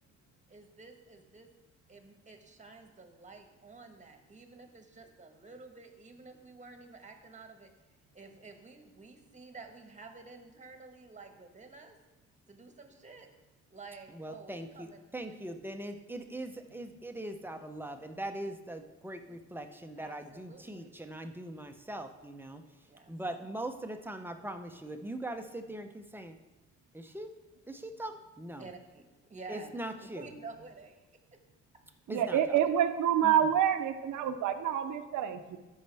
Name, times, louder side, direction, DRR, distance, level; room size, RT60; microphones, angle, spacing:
voice 1, 0.5-1.5 1.9-7.7 8.1-12.0 12.5-13.3 13.7-15.6 20.0-21.0 22.9-23.1 28.6-29.0 29.3-31.0, right 3 dB, 25° right, 5 dB, 1.4 m, -51 dB
voice 2, 14.1-14.9 15.1-22.6 23.1-26.4 26.9-27.3 27.7-28.7 29.5-30.3 32.1-32.5 33.2-33.3, right 1 dB, 5° right, 6 dB, 0.8 m, -41 dB
voice 3, 32.1-35.6, right 9 dB, 75° right, 9 dB, 0.8 m, -27 dB
13.5 x 5.5 x 3.5 m, 1.1 s
cardioid pair, 90°, 30 cm